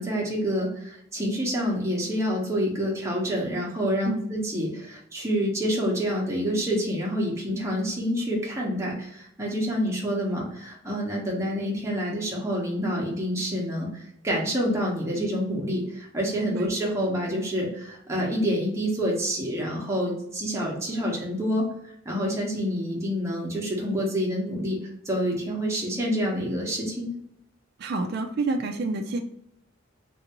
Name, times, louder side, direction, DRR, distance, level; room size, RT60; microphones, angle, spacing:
voice 1, 0.0-27.1, equal, 15° right, -3 dB, 0.9 m, -27 dB
voice 2, 27.8-29.2, right 3 dB, 50° right, 3 dB, 0.4 m, -28 dB
3.3 x 2.6 x 2.9 m, 0.74 s
head